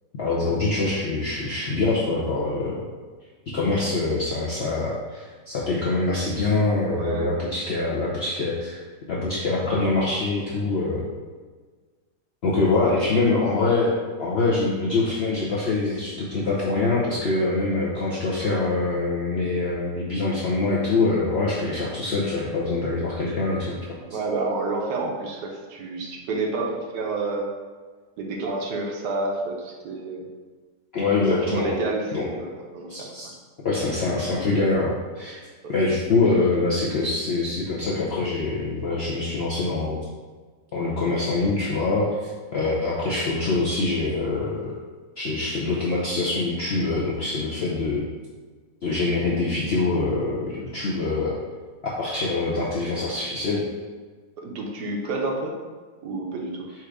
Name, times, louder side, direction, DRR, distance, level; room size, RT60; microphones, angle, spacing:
voice 1, 0.2-2.8 3.5-8.8 9.1-11.0 12.4-23.8 30.9-31.7 32.1-32.2 32.9-33.3 33.6-35.3 35.7-40.0 40.7-44.7 45.2-48.0 48.8-51.3 52.0-53.6, left 3 dB, 60° left, -6 dB, 0.6 m, -24 dB
voice 2, 6.9-7.3 7.7-7.8 12.8-12.9 24.1-27.5 28.2-30.3 31.4-33.3 35.6-35.7 36.3-36.4 54.4-55.6 56.0-56.7, right 3 dB, 75° right, 0 dB, 1.3 m, -29 dB
4.4 x 2.5 x 4.7 m, 1.4 s
omnidirectional pair, 1.8 m